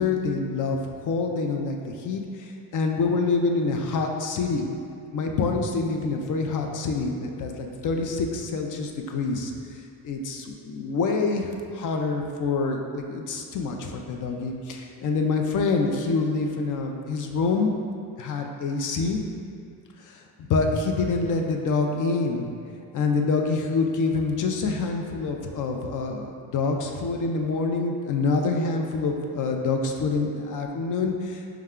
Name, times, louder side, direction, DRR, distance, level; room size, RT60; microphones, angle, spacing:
voice 1, 0.0-1.8 2.0-4.7 5.1-9.5 10.0-17.8 18.2-19.3 20.1-20.2 20.5-22.5 22.9-31.5, left 4 dB, 60° left, 3 dB, 0.5 m, -26 dB
4.6 x 2.2 x 3.6 m, 2.4 s
cardioid pair, 90°, 36 cm